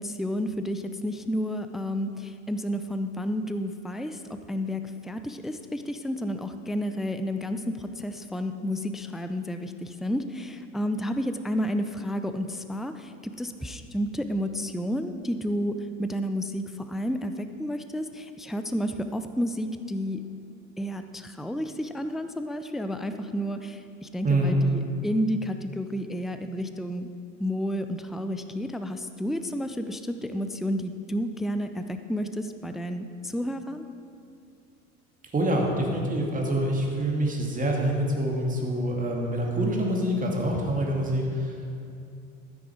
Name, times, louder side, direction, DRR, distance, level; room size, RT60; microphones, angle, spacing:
voice 1, 0.0-15.7 16.0-20.2 20.8-27.1 27.4-33.8, equal, ahead, 8 dB, 0.3 m, -31 dB
voice 2, 35.3-41.7, right 1 dB, 20° right, -1 dB, 2.5 m, -26 dB
12.5 x 9.6 x 4.8 m, 2.6 s
figure-of-eight pair, 75°, 41 cm